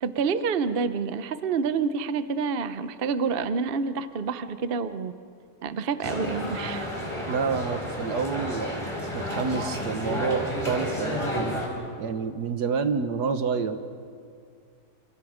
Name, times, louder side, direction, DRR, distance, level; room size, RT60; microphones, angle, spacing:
voice 1, 0.0-5.1 5.6-6.8, right 5 dB, 45° right, 12 dB, 0.7 m, -28 dB
sound 1, 6.0-11.7, equal, 15° left, 4.1 m, -31 dB
voice 2, 7.2-8.8 9.1-13.8, right 5 dB, 65° right, 9 dB, 1.7 m, -29 dB
28.5 x 26.5 x 5.0 m, 2.2 s
omnidirectional pair, 1.9 m